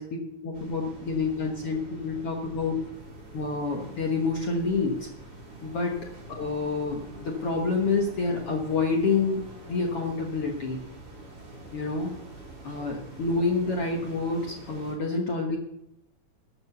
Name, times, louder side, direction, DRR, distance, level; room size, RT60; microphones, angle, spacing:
voice 1, 0.0-2.9 3.3-5.1 5.6-5.9 6.3-9.4 9.7-10.8 11.7-12.1 12.6-15.6, left 4 dB, 60° left, 0 dB, 1.6 m, -28 dB
sound 1, 0.5-15.0, right 1 dB, 35° right, 4.6 m, -46 dB
13.0 x 7.0 x 6.8 m, 0.81 s
omnidirectional pair, 4.5 m